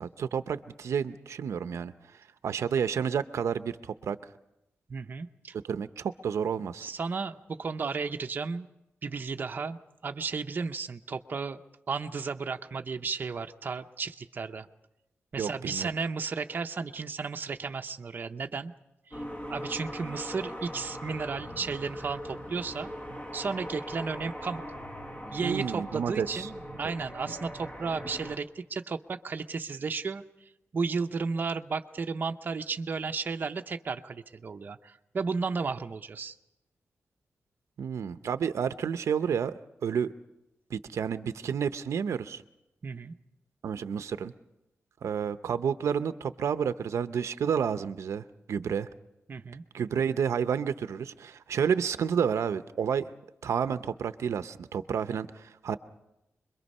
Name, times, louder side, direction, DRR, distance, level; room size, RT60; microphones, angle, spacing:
voice 1, 0.0-1.9 2.4-4.2 5.6-6.9 15.4-15.9 25.4-26.5 37.8-39.5 39.8-40.1 40.7-42.4 43.6-44.3 45.0-48.9 49.7-53.0 53.4-55.8, right 7 dB, 85° right, 11 dB, 0.7 m, -30 dB
voice 2, 4.9-5.6 6.8-8.7 9.0-11.6 11.9-14.7 15.3-18.7 19.1-19.2 19.5-22.9 23.3-24.6 25.3-30.2 30.7-36.3 42.8-43.1 49.3-49.6, right 4 dB, 40° right, 6 dB, 0.7 m, -34 dB
sound 1, 19.1-28.4, equal, 25° left, 1.6 m, -40 dB
26.0 x 22.5 x 5.5 m, 0.91 s
wide cardioid pair, 175°, 5 cm